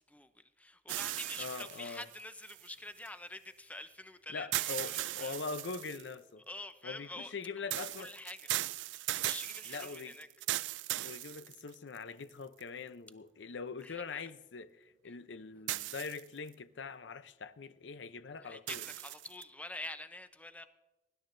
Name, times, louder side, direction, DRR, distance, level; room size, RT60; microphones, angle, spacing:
voice 1, 0.0-5.4 6.5-8.5 9.1-10.3 13.8-14.2 15.0-15.1 18.4-20.6, left 2 dB, 10° left, 0.6 m, -47 dB
sound 1, 0.9-3.1 4.5-6.1 7.7-12.0 12.6-12.7 15.7-16.5 18.7-19.4, right 16 dB, 90° right, 0.3 m, -38 dB
voice 2, 1.4-2.1 4.3-6.4 6.8-8.1 9.7-10.1 11.0-18.8, left 5 dB, 85° left, 0.6 m, -43 dB
24.0 x 11.5 x 2.6 m
head